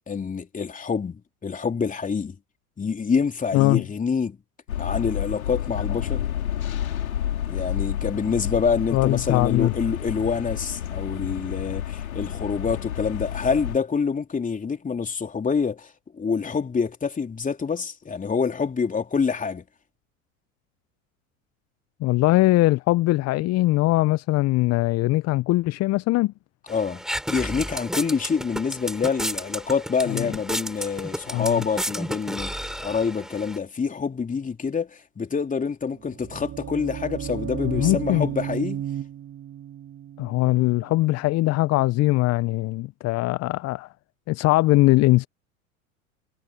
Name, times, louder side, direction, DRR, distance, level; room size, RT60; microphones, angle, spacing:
voice 1, 0.0-2.3 2.8-4.4 4.8-6.3 7.5-19.6 26.7-38.8, left 5 dB, 20° left, 3.4 m, -26 dB
voice 2, 3.5-3.8 8.9-9.7 22.0-26.3 30.1-30.3 31.3-31.6 37.6-38.3 40.2-43.9 44.3-45.3, left 19 dB, 40° left, 0.9 m, -21 dB
sound 1, 4.7-13.8, left 10 dB, 75° left, 4.7 m, -30 dB
sound 2, 26.7-33.6, equal, ahead, 6.4 m, -32 dB
sound 3, 35.9-41.8, right 10 dB, 30° right, 1.9 m, -34 dB
figure-of-eight pair, 85°, 42 cm